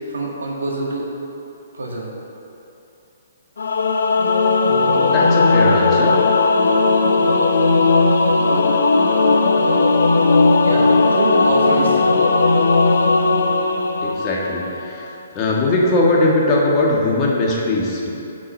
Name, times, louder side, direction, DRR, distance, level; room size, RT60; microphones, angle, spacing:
voice 1, 0.1-1.1 1.7-2.1 10.6-12.0, right 2 dB, 85° right, -2 dB, 1.6 m, -24 dB
Singing / Musical instrument, 3.6-14.8, left 3 dB, 80° left, 0.5 m, -16 dB
voice 2, 4.7-6.1 14.0-18.1, left 2 dB, 30° left, -3 dB, 1.5 m, -20 dB
6.2 x 5.0 x 6.2 m, 2.9 s
hypercardioid pair, 140°, 0 cm